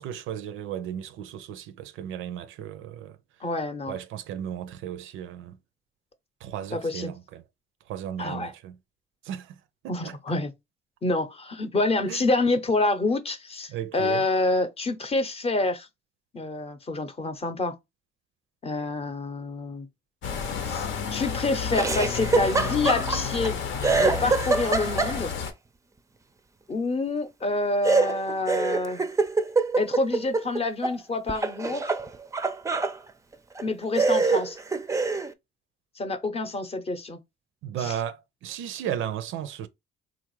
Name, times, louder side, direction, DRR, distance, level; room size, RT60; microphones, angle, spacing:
voice 1, 0.0-3.2 3.9-5.6 6.4-7.4 7.9-8.8 9.2-9.6 9.8-10.1 12.1-12.2 13.7-14.3 37.6-39.7, right 10 dB, 85° right, 0.5 m, -35 dB
voice 2, 3.4-4.0 6.7-7.1 8.2-8.5 9.9-10.5 11.0-15.9 16.3-17.8 18.6-19.9 20.6-23.6 24.0-25.4 26.7-29.0 29.8-31.9 33.6-34.6 36.0-37.2 37.8-38.0, left 2 dB, 30° left, 0.7 m, -27 dB
sound 1, 20.2-25.5, left 6 dB, 75° left, 0.8 m, -31 dB
Laughter, 21.7-23.5 23.8-25.5 27.8-31.0 31.3-33.0 33.6-33.7 34.0-35.3, right 4 dB, 15° right, 0.4 m, -25 dB
3.8 x 2.4 x 3.1 m
cardioid pair, 90°, 20 cm